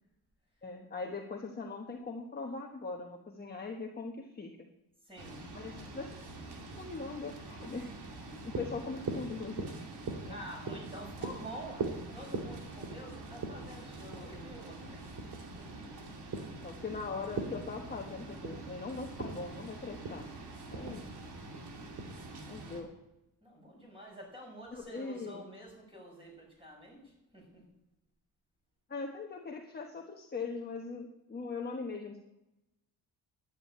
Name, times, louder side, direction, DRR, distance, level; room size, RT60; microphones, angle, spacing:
voice 1, 0.6-4.5 5.5-6.2 6.7-7.9 8.2-9.7 10.3-10.4 16.6-20.3 20.7-21.0 22.5-22.9 24.7-25.5 28.9-32.2, left 4 dB, 25° left, 1 dB, 1.2 m, -41 dB
voice 2, 5.0-5.4 10.3-15.0 15.6-15.8 23.4-27.6, equal, 15° right, -1 dB, 5.9 m, -48 dB
sound 1, 5.2-22.8, right 2 dB, 75° right, 2.8 m, -47 dB
sound 2, 8.2-22.7, right 4 dB, 50° right, 2.5 m, -42 dB
11.5 x 9.3 x 8.5 m, 0.94 s
cardioid pair, 135°, 40 cm